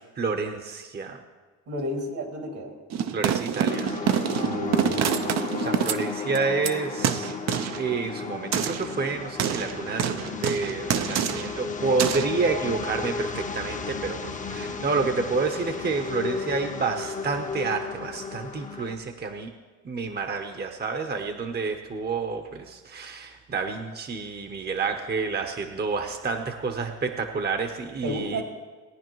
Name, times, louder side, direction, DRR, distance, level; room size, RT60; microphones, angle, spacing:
voice 1, 0.2-1.2 3.1-3.9 5.6-7.3 7.8-19.5 19.8-28.4, right 4 dB, 35° right, 6 dB, 0.8 m, -29 dB
voice 2, 1.7-2.7 4.3-5.1 28.0-28.4, equal, 80° right, 2 dB, 2.6 m, -32 dB
sound 1, 2.9-6.7 7.0-7.8 8.5-8.9 9.4-11.6 12.0-12.3, right 8 dB, 60° right, 0.6 m, -26 dB
sound 2, 3.7-19.0, left 5 dB, 25° left, 0.7 m, -34 dB
18.0 x 9.7 x 3.1 m, 1.4 s
cardioid pair, 90°, 30 cm